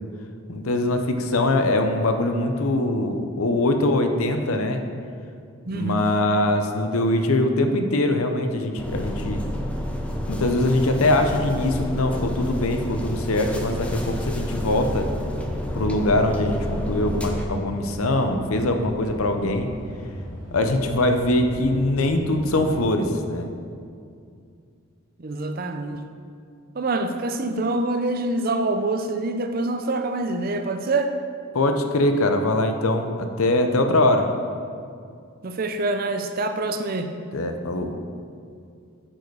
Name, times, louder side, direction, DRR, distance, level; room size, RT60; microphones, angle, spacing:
voice 1, 0.5-4.8 5.7-9.4 10.3-15.1 15.7-19.7 20.5-23.5 31.5-34.3 37.3-37.9, left 1 dB, 85° left, 6 dB, 0.7 m, -22 dB
voice 2, 5.7-6.1 25.2-26.0 26.7-31.1 35.4-37.1, right 2 dB, 45° right, 7 dB, 0.5 m, -25 dB
sound 1, 8.8-17.5, equal, 5° left, 0.5 m, -29 dB
sound 2, 15.7-22.8, equal, 20° right, 2.1 m, -38 dB
8.8 x 4.9 x 4.7 m, 2.4 s
head